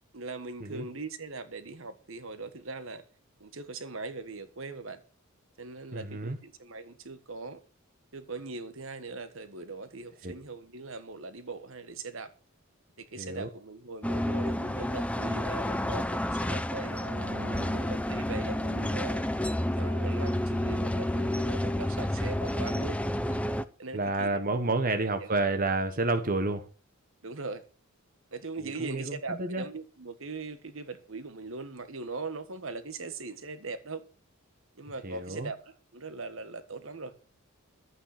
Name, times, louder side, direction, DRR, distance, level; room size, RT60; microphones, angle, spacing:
voice 1, 0.1-3.0 3.4-5.0 5.6-7.6 8.1-12.3 13.0-17.0 17.6-19.2 19.8-23.0 23.3-23.4 23.8-24.7 25.2-25.3 27.2-27.6 28.3-34.0 34.8-35.6 35.9-37.1, right 3 dB, 65° right, 1.5 m, -40 dB
voice 2, 5.9-6.4 10.2-10.3 13.2-13.5 16.8-17.9 23.9-26.6 28.6-29.7 35.0-35.5, right 2 dB, 40° right, 1.2 m, -30 dB
sound 1, 14.0-23.6, left 1 dB, 5° left, 0.7 m, -30 dB
12.5 x 9.0 x 6.7 m
head